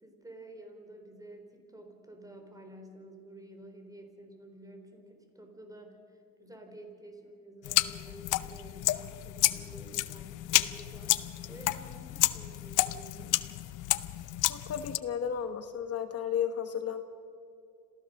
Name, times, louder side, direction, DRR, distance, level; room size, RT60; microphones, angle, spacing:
voice 1, 0.0-13.4, right 1 dB, 10° right, 4 dB, 3.9 m, -50 dB
sound 1, 7.6-15.0, left 16 dB, 90° left, 0.7 m, -30 dB
voice 2, 14.5-17.0, left 8 dB, 55° left, 8 dB, 1.2 m, -33 dB
27.0 x 15.5 x 6.5 m, 2.6 s
cardioid pair, 90°, 30 cm